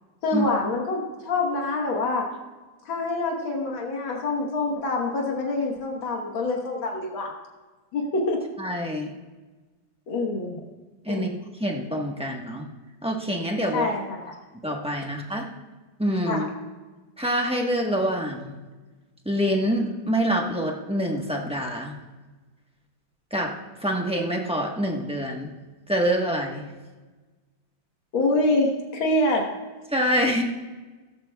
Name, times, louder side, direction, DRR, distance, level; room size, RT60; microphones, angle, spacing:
voice 1, 0.2-2.3 2.9-7.3 7.9-8.4 10.1-10.6 11.1-11.3 13.7-14.4 16.3-16.4 28.1-29.5, left 2 dB, 90° left, 1 dB, 2.1 m, -26 dB
voice 2, 8.6-9.1 11.0-11.3 11.6-12.6 13.0-13.9 14.6-15.5 16.0-16.5 17.2-18.6 19.2-21.9 23.3-23.5 23.8-25.5 25.9-26.7 29.9-30.4, equal, 5° right, 0 dB, 0.8 m, -26 dB
15.5 x 13.5 x 2.3 m, 1.3 s
omnidirectional pair, 2.1 m